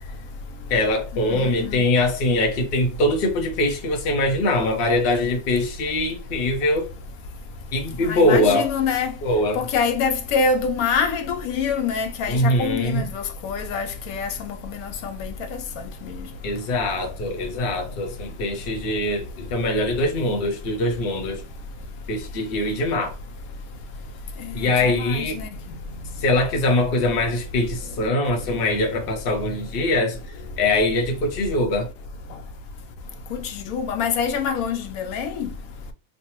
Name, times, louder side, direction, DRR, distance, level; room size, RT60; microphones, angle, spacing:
voice 1, 0.7-6.9 7.7-8.7 9.2-9.6 12.3-13.1 16.4-21.4 22.1-23.1 24.5-25.4 26.2-30.2 30.6-31.9, left 1 dB, 50° left, 0.8 m, -22 dB
voice 2, 1.2-1.8 8.0-9.1 9.5-15.3 24.4-25.5 33.5-35.5, left 5 dB, 85° left, 1.1 m, -25 dB
3.2 x 2.2 x 2.9 m
omnidirectional pair, 1.5 m